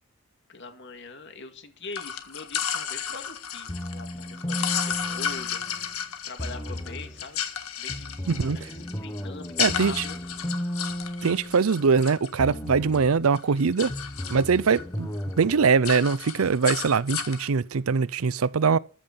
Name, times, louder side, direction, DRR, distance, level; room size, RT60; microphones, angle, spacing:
voice 1, 0.5-5.9 6.2-7.4 7.8-8.2 8.5-8.7 9.0-10.2, left 3 dB, 60° left, 2.3 m, -42 dB
sound 1, 1.9-13.0 13.3-14.8 15.1-15.4 15.7-17.5, left 8 dB, 85° left, 1.7 m, -33 dB
sound 2, 3.7-5.9 6.4-7.2 7.9-12.0 12.4-13.2 13.9-15.7, equal, 15° left, 1.0 m, -35 dB
voice 2, 8.3-8.6 9.6-10.0 11.2-13.9 14.3-18.8, right 5 dB, 80° right, 0.6 m, -22 dB
14.0 x 5.8 x 8.8 m
head